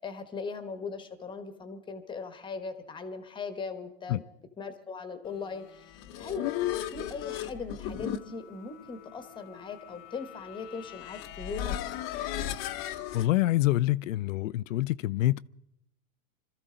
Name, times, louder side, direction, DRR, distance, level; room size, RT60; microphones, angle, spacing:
voice 1, 0.0-4.2 4.6-6.5 6.9-11.8, left 4 dB, 10° left, 1.3 m, -39 dB
sound 1, 5.7-13.3, left 11 dB, 30° left, 0.9 m, -36 dB
voice 2, 13.1-15.4, left 16 dB, 65° left, 0.5 m, -26 dB
26.0 x 13.5 x 3.9 m
hypercardioid pair, 130°, 42 cm